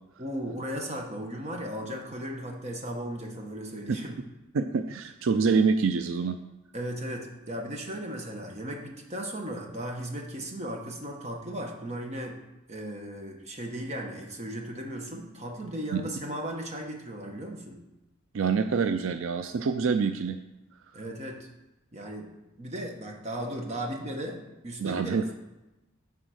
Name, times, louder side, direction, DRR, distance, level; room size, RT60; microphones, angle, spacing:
voice 1, 0.2-4.1 6.7-12.4 12.7-17.8 20.9-21.5 21.9-22.3 22.6-25.4, right 1 dB, 35° right, 2 dB, 1.2 m, -36 dB
voice 2, 4.5-6.4 15.9-16.0 18.3-20.4 24.8-25.2, right 5 dB, 70° right, 8 dB, 0.4 m, -26 dB
10.0 x 4.3 x 6.4 m, 1.0 s
head